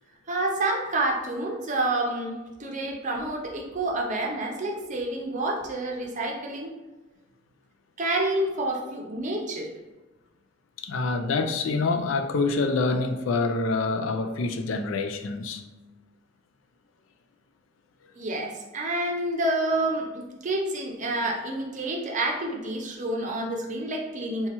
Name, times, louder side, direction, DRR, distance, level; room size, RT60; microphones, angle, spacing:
voice 1, 0.3-6.7 8.0-9.7 18.1-24.5, right 2 dB, 40° right, 0 dB, 0.6 m, -28 dB
voice 2, 10.8-15.6, left 3 dB, 70° left, 5 dB, 0.4 m, -26 dB
4.2 x 2.3 x 2.8 m, 1.2 s
head